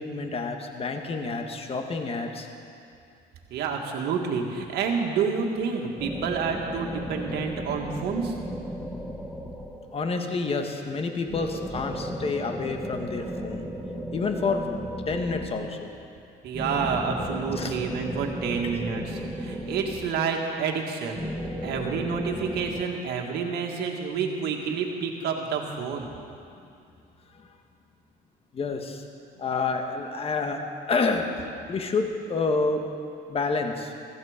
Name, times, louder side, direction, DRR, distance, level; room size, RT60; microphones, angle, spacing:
voice 1, 0.0-2.5 9.9-13.7 14.1-14.6 15.1-15.9 17.6-17.8 27.3-27.5 28.5-29.0 29.4-30.6 30.9-31.3 31.7-32.8 33.3-33.9, left 4 dB, 35° left, 5 dB, 1.5 m, -28 dB
voice 2, 3.5-8.3 16.4-21.2 21.6-26.1, right 6 dB, 75° right, 2 dB, 1.9 m, -29 dB
sound 1, 6.0-10.2 11.3-15.9 16.5-20.5 21.1-22.8, equal, ahead, 1.4 m, -35 dB
15.5 x 14.5 x 5.1 m, 2.5 s
cardioid pair, 110°, 17 cm